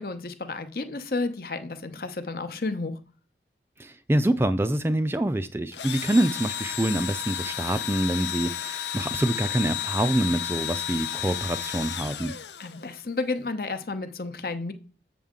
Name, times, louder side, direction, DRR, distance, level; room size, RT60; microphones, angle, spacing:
voice 1, 0.0-3.0 12.6-14.7, left 3 dB, 55° left, 0.8 m, -31 dB
voice 2, 3.8-12.3, right 1 dB, 15° right, 0.4 m, -26 dB
Engine / Drill, 5.7-13.0, left 11 dB, 80° left, 0.6 m, -33 dB
7.3 x 7.2 x 3.7 m
head